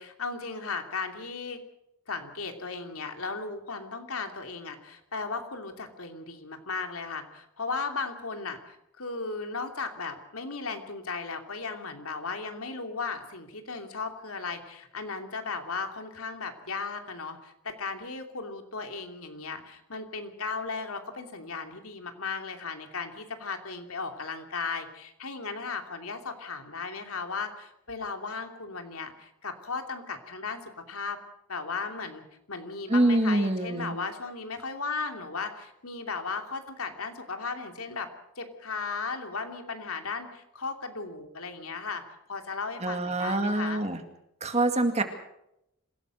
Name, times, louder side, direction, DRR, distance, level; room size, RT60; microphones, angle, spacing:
voice 1, 0.0-1.6 2.1-31.2 31.5-38.1 38.4-42.0 42.3-43.8, left 4 dB, 75° left, 5 dB, 2.9 m, -36 dB
voice 2, 32.9-34.0 42.8-44.0 44.4-45.0, right 2 dB, 30° right, 7 dB, 2.1 m, -25 dB
26.5 x 17.0 x 6.5 m, 0.81 s
head